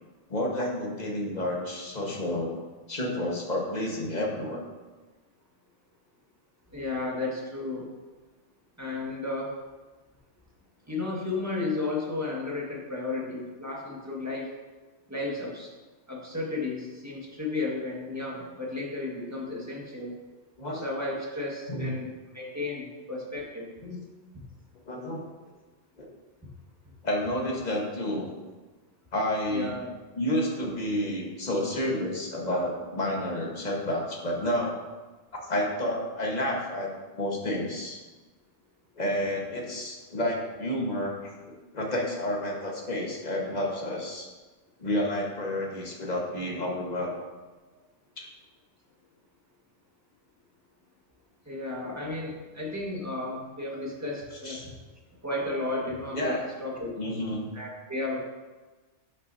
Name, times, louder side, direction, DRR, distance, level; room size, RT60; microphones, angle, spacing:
voice 1, 0.3-2.5 2.9-4.6 20.6-20.8 21.7-22.0 23.8-24.0 24.9-25.2 26.0-26.1 27.0-28.3 29.1-29.8 30.1-34.8 35.5-38.0 39.0-41.3 41.7-44.3 44.8-47.1 48.2-48.3 54.4-54.7 56.1-56.5 57.0-57.4, left 1 dB, 35° left, -1 dB, 1.5 m, -30 dB
voice 2, 6.7-7.9 8.8-9.5 10.9-14.5 15.1-15.7 16.1-20.2 20.8-23.7 29.5-29.9 51.4-54.7 55.2-56.9 57.5-58.2, left 2 dB, 15° right, -3 dB, 1.6 m, -33 dB
11.5 x 6.2 x 2.7 m, 1.3 s
omnidirectional pair, 1.3 m